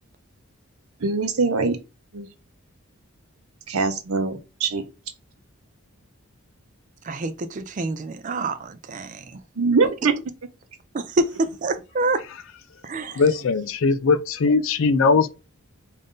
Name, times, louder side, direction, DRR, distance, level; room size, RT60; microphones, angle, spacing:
voice 1, 1.0-1.8 2.1-2.3 3.7-4.8 9.6-10.1, right 4 dB, 75° right, 0.7 m, -22 dB
voice 2, 7.0-9.4 10.9-12.2 12.8-13.2, right 2 dB, 35° right, 0.3 m, -27 dB
voice 3, 13.1-15.3, left 4 dB, 65° left, 0.4 m, -20 dB
3.8 x 2.5 x 3.6 m
head